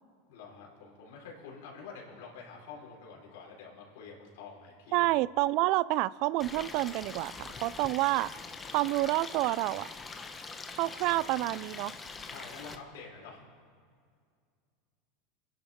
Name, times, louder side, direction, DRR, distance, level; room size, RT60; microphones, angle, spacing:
voice 1, 0.3-5.1 11.0-11.2 12.2-13.5, left 5 dB, 75° left, -2 dB, 4.2 m, -48 dB
voice 2, 4.9-8.3 8.7-9.9 10.8-11.9, right 18 dB, 60° right, 21 dB, 0.3 m, -28 dB
Stream, 6.4-12.8, left 4 dB, 20° left, 1.2 m, -43 dB
29.0 x 10.5 x 3.6 m, 2.1 s
hypercardioid pair, 105°, 0 cm